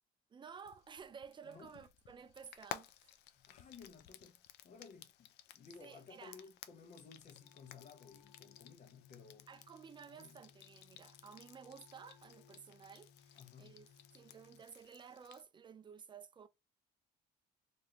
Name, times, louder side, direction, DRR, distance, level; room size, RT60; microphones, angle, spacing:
voice 1, 0.3-3.2 5.8-6.4 9.5-13.9 14.1-16.5, right 6 dB, 30° right, 0.4 m, -54 dB
Frying (food), 0.6-15.4, left 11 dB, 80° left, 0.4 m, -56 dB
voice 2, 1.4-1.7 3.3-9.5 10.1-10.4 13.4-14.0, left 5 dB, 45° left, 0.9 m, -57 dB
sound 1, 7.3-14.6, left 6 dB, 15° left, 0.7 m, -65 dB
3.1 x 2.6 x 2.9 m
cardioid pair, 110°, 17 cm